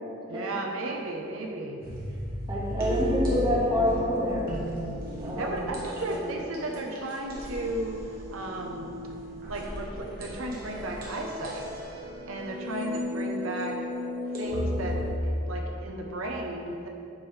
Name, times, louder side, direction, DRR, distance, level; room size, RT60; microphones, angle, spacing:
voice 1, 0.3-1.8 5.3-8.0 8.3-8.9 9.5-11.8 12.3-13.8 14.3-16.9, right 2 dB, 80° right, 1 dB, 0.6 m, -34 dB
sound 1, 1.8-15.2, left 1 dB, 45° right, 1.2 m, -34 dB
voice 2, 2.5-4.5 5.2-5.5, equal, 20° right, -4 dB, 1.1 m, -27 dB
7.3 x 3.2 x 5.6 m, 2.5 s
head